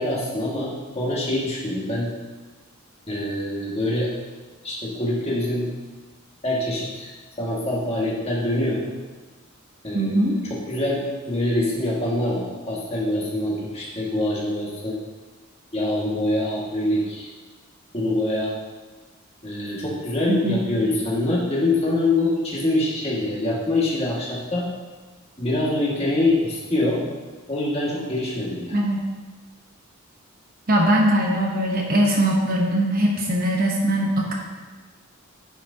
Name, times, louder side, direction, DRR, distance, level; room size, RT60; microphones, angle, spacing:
voice 1, 0.0-2.1 3.1-4.1 4.6-5.7 6.4-7.1 7.4-8.8 9.8-15.0 15.7-17.3 17.9-18.5 19.4-24.7 25.4-27.0 27.5-28.8, left 1 dB, 30° left, -6 dB, 1.8 m, -24 dB
voice 2, 9.9-10.4 20.3-20.6 28.7-29.0 30.7-34.3, right 1 dB, 40° right, -1 dB, 1.0 m, -21 dB
10.0 x 6.1 x 2.8 m, 1.3 s
head